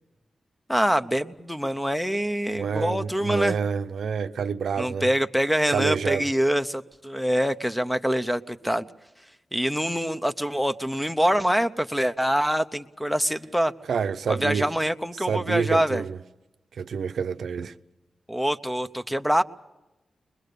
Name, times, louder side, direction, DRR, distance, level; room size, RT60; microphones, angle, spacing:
voice 1, 0.7-3.6 4.8-8.8 9.5-13.7 14.3-16.0 18.3-19.4, equal, ahead, 0.7 m, -25 dB
voice 2, 2.5-5.1 5.7-6.3 13.9-14.8 15.3-16.2 16.8-17.7, right 6 dB, 80° right, 0.7 m, -28 dB
24.0 x 21.5 x 6.7 m
wide cardioid pair, 150°, 0 cm